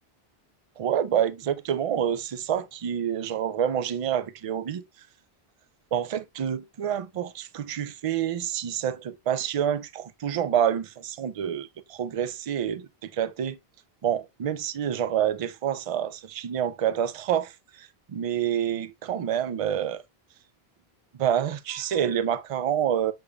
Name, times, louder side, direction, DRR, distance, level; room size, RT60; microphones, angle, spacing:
voice 1, 0.8-4.8 5.9-13.6 14.0-20.0 21.2-23.1, right 9 dB, 55° right, 0.4 m, -28 dB
6.8 x 3.4 x 2.2 m
omnidirectional pair, 1.0 m